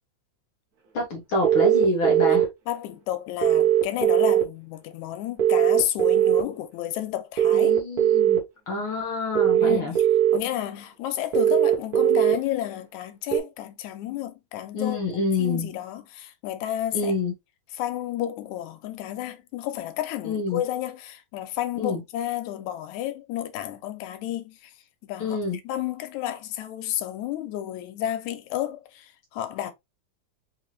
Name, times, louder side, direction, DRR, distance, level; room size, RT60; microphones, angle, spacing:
voice 1, 0.9-2.5 7.5-8.4 8.7-9.9 14.7-15.7 16.9-17.3 20.2-20.6 21.8-22.0 25.2-25.6, left 2 dB, 55° left, 1.6 m, -27 dB
sound 1, 1.4-2.4 3.4-4.4 5.4-6.4 7.4-8.4 9.4-10.4 11.3-12.3 13.3-13.4, right 11 dB, 80° right, 0.8 m, -19 dB
voice 2, 2.7-7.7 9.6-10.1 10.3-15.0 15.4-17.1 17.7-24.6 25.0-25.4 25.6-29.7, left 12 dB, 90° left, 2.0 m, -31 dB
5.0 x 2.7 x 3.1 m
omnidirectional pair, 3.4 m